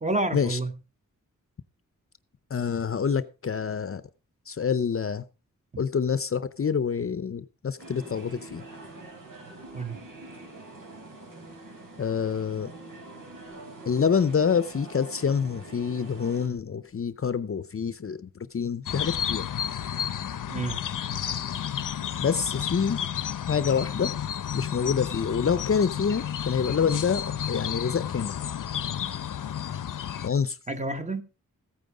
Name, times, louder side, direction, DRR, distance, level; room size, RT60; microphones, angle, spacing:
voice 1, 0.0-0.7 9.7-10.0 20.5-20.8 30.7-31.2, right 2 dB, 20° right, 1.4 m, -29 dB
voice 2, 2.5-4.0 4.5-5.2 5.8-8.6 12.0-12.7 13.9-19.4 22.2-23.0 23.5-24.1 24.5-28.3 30.2-30.6, left 6 dB, 45° left, 0.7 m, -27 dB
sound 1, 7.8-16.5, right 2 dB, 80° right, 6.2 m, -45 dB
sound 2, 18.9-30.3, left 9 dB, 75° left, 0.8 m, -32 dB
15.0 x 9.4 x 4.9 m
wide cardioid pair, 160°, 32 cm